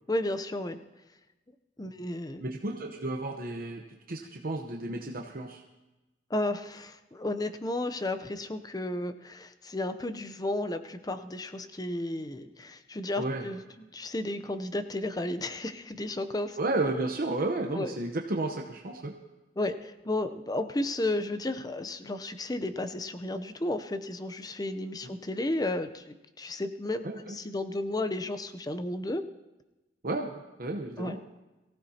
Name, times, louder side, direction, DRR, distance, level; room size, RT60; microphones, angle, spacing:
voice 1, 0.1-0.8 1.8-2.4 6.3-16.6 17.7-17.9 19.6-29.3 31.0-31.2, left 1 dB, 20° left, 10 dB, 0.6 m, -33 dB
voice 2, 2.4-5.6 13.2-13.5 16.6-19.1 27.0-27.4 30.0-31.2, right 2 dB, 50° right, 2 dB, 0.9 m, -32 dB
22.5 x 15.5 x 2.9 m, 1.1 s
head